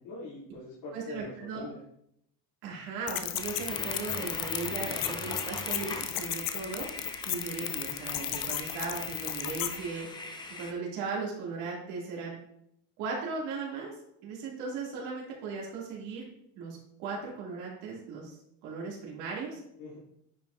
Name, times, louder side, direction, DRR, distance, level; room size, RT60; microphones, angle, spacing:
voice 1, 0.0-1.8 19.8-20.0, left 2 dB, 80° left, -10 dB, 3.0 m, -43 dB
voice 2, 0.9-1.7 2.6-6.9 7.2-10.3 10.6-12.4 13.0-13.9 14.2-16.3 16.6-18.4 18.6-19.6, right 4 dB, 85° right, -3 dB, 2.6 m, -37 dB
sound 1, 3.1-9.8, left 13 dB, 50° left, 0.6 m, -34 dB
sound 2, 3.4-10.7, left 2 dB, 10° left, 0.7 m, -41 dB
9.7 x 5.4 x 2.6 m, 0.74 s
cardioid pair, 140°, 41 cm